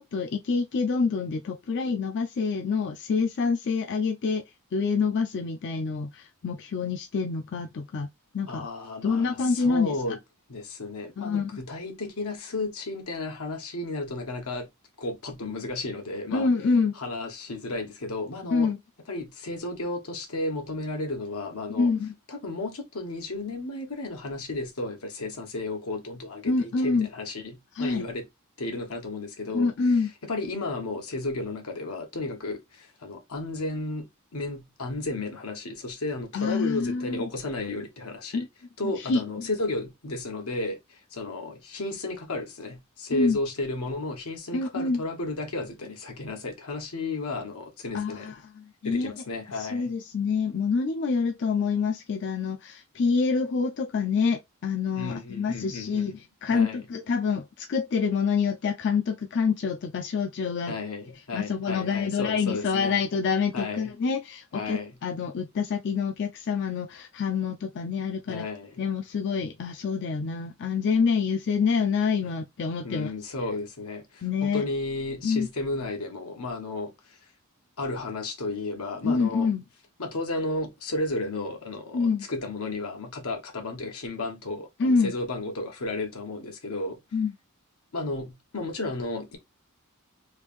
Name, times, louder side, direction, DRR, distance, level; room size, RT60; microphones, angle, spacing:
voice 1, 0.0-4.4 4.7-8.1 8.3-8.7 9.0-10.0 11.2-11.5 16.3-16.9 18.5-18.8 21.8-22.1 26.5-27.1 27.7-28.0 29.5-30.1 36.3-37.2 38.3-38.5 38.8-39.2 43.1-43.4 44.5-45.0 47.9-49.1 49.5-60.8 61.3-68.5 68.8-73.1 74.2-74.6 75.2-75.5 79.0-79.6 81.9-82.3 84.8-85.1 87.1-87.3, left 5 dB, 55° left, 0.4 m, -26 dB
voice 2, 8.5-10.2 10.5-14.7 15.0-16.5 17.0-18.7 19.1-21.9 22.3-28.2 28.6-29.7 30.2-34.1 34.3-38.5 38.8-48.4 48.8-49.9 55.0-56.2 56.5-56.9 60.7-63.0 63.5-63.9 64.5-65.0 68.3-68.8 72.8-77.2 77.8-79.5 80.0-87.0 87.9-89.4, left 2 dB, 85° left, 1.1 m, -33 dB
3.3 x 2.5 x 3.5 m
head